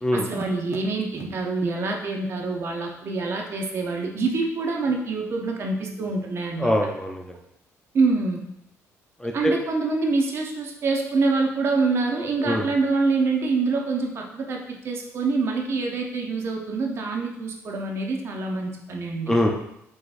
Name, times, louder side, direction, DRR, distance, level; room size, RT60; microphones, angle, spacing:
voice 1, 0.1-6.7 7.9-8.4 9.3-19.4, right 3 dB, 50° right, 1 dB, 0.8 m, -25 dB
voice 2, 6.6-7.3 9.2-9.5 12.4-12.7 19.3-19.5, left 1 dB, 10° left, 1 dB, 0.5 m, -23 dB
4.9 x 3.7 x 2.5 m, 0.79 s
cardioid pair, 110°, 6 cm